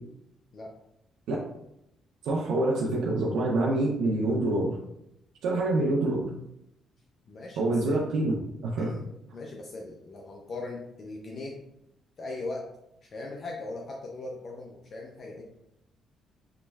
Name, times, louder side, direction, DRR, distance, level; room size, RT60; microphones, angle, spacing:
voice 1, 2.2-4.8 5.4-6.3 7.6-8.3 8.6-8.9, right 2 dB, 80° right, -3 dB, 0.7 m, -26 dB
voice 2, 7.3-8.0 8.8-9.1 9.3-11.6 12.2-12.7 13.0-15.4, left 2 dB, 40° left, 0 dB, 0.5 m, -39 dB
5.8 x 3.1 x 2.3 m, 0.82 s
cardioid pair, 130°, 0 cm